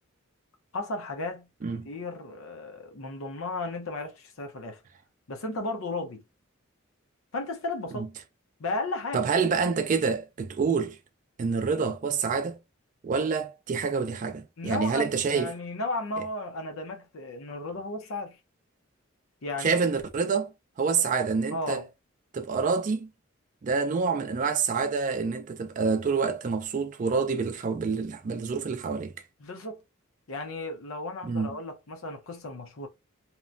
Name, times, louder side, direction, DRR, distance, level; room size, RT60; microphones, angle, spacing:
voice 1, 0.7-1.5 1.8-4.8 5.3-6.2 7.3-8.1 8.6-9.3 14.6-18.4 19.4-19.8 21.5-21.9 29.4-29.8 30.3-32.9, left 2 dB, 85° left, 0.7 m, -34 dB
voice 2, 9.1-11.0 11.4-12.6 13.0-15.5 19.6-20.5 20.8-21.8 22.3-23.1 23.6-29.1 31.2-31.5, right 5 dB, 40° right, 0.3 m, -27 dB
2.9 x 2.1 x 2.5 m
head